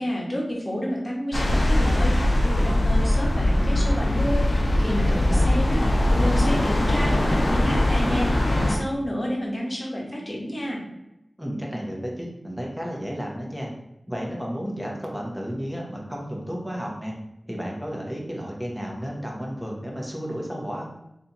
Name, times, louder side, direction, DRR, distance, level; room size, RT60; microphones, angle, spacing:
voice 1, 0.0-5.8 6.1-10.8, equal, 35° left, -3 dB, 1.4 m, -30 dB
sound 1, 1.3-8.8, left 1 dB, 65° left, 0.7 m, -21 dB
voice 2, 5.1-5.5 11.4-13.7 14.1-17.1 17.5-20.8, equal, 5° right, -2 dB, 1.1 m, -32 dB
3.3 x 2.9 x 4.0 m, 0.88 s
wide cardioid pair, 55°, 0 cm